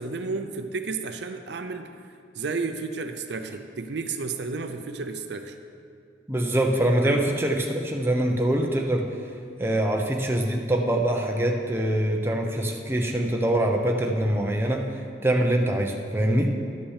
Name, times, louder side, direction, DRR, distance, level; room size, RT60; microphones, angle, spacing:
voice 1, 0.0-1.9 2.3-5.6 7.1-7.2, right 4 dB, 70° right, 7 dB, 0.5 m, -32 dB
voice 2, 6.3-9.1 9.6-16.5, right 1 dB, 15° right, 1 dB, 0.8 m, -24 dB
11.5 x 6.0 x 6.5 m, 2.3 s
head